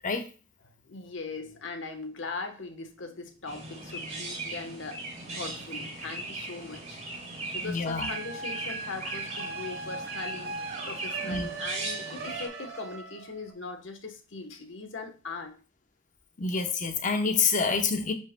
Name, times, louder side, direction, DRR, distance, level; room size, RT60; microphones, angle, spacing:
voice 1, 0.6-5.0 5.3-7.0 7.4-15.6, left 3 dB, 70° left, 1.1 m, -40 dB
Chirp tweet, 3.5-12.5, right 2 dB, 35° right, 2.7 m, -38 dB
voice 2, 7.6-8.1 11.2-11.5 16.4-18.1, left 5 dB, 40° left, 0.8 m, -27 dB
sound 1, 8.0-13.5, right 4 dB, 55° right, 1.2 m, -39 dB
10.5 x 5.3 x 2.2 m
head